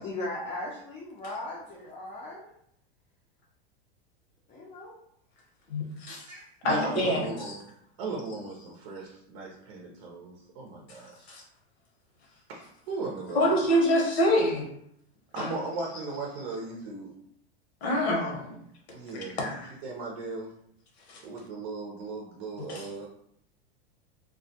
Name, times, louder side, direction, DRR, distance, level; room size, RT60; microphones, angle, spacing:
voice 1, 0.0-2.5 4.5-4.9, left 2 dB, 20° left, -4 dB, 0.5 m, -37 dB
voice 2, 5.7-6.3 6.6-7.5 11.3-11.4 13.3-14.7 15.4-15.5 17.8-18.6 19.1-19.7 21.1-21.2 22.7-22.9, equal, 85° left, 0 dB, 0.9 m, -26 dB
voice 3, 6.3-7.6 8.0-11.3 12.5-13.5 15.3-17.1 18.9-19.6 19.8-20.5 21.2-23.1, right 3 dB, 60° right, -1 dB, 0.6 m, -37 dB
2.3 x 2.1 x 2.7 m, 0.71 s
hypercardioid pair, 120°, 31 cm